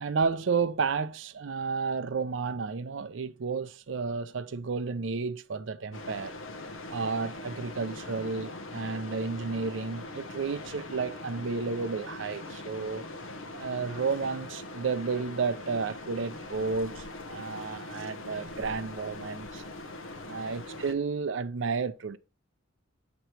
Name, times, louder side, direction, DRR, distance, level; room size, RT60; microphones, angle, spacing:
voice 1, 0.0-6.4 6.9-13.1 13.5-19.6 20.2-22.2, right 4 dB, 70° right, 0.5 m, -32 dB
sound 1, 5.9-20.9, left 2 dB, 80° left, 0.8 m, -42 dB
8.0 x 3.0 x 4.4 m
head